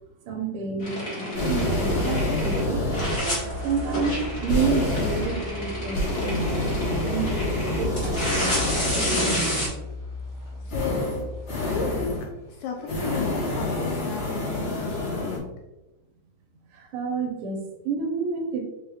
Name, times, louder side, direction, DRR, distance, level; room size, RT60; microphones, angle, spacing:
voice 1, 0.3-2.8 3.2-6.6 7.0-8.7 16.9-18.6, right 5 dB, 80° right, 2 dB, 2.1 m, -29 dB
sound 1, 0.8-2.6 2.9-9.7, equal, 30° left, 1.2 m, -30 dB
sound 2, 1.3-9.3 10.7-12.3 12.8-15.4, left 1 dB, 50° left, 1.8 m, -28 dB
sound 3, 3.2-12.2, left 3 dB, 45° right, 0.7 m, -37 dB
voice 2, 10.6-11.3 11.6-15.5, left 5 dB, 80° left, 2 dB, 1.7 m, -34 dB
5.4 x 4.1 x 2.4 m, 0.98 s
omnidirectional pair, 3.7 m